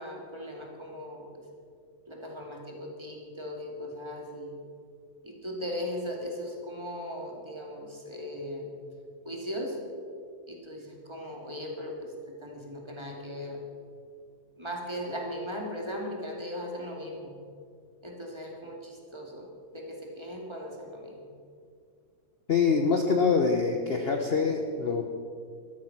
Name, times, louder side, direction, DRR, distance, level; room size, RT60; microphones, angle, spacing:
voice 1, 0.0-1.4 2.1-4.5 5.2-8.7 9.2-9.8 10.5-13.6 14.6-17.4 18.0-19.5 19.7-21.3, equal, 15° right, -1 dB, 2.6 m, -38 dB
voice 2, 22.5-25.1, left 5 dB, 45° left, 3 dB, 1.1 m, -25 dB
14.0 x 13.0 x 6.1 m, 2.2 s
omnidirectional pair, 1.7 m